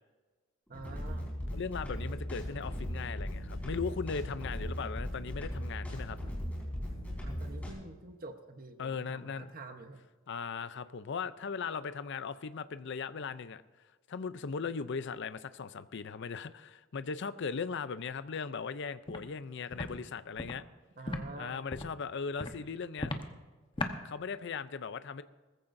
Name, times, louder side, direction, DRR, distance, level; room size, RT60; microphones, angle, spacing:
sound 1, 0.7-7.7, equal, 10° left, 4.1 m, -38 dB
voice 1, 0.7-1.3 7.2-10.0 21.0-21.6, right 2 dB, 45° right, 6 dB, 1.0 m, -47 dB
voice 2, 1.5-6.2 8.8-9.5 10.3-13.6 14.1-20.6 21.4-23.1 24.0-25.2, left 5 dB, 65° left, 13 dB, 0.5 m, -38 dB
Walk footsteps, 19.1-19.2 19.7-19.9 20.4-20.5 21.1-21.2 21.7-21.9 22.4-22.6 23.0-23.2 23.8-23.9, left 2 dB, 25° left, 1.0 m, -35 dB
20.5 x 14.5 x 2.6 m, 1.3 s
head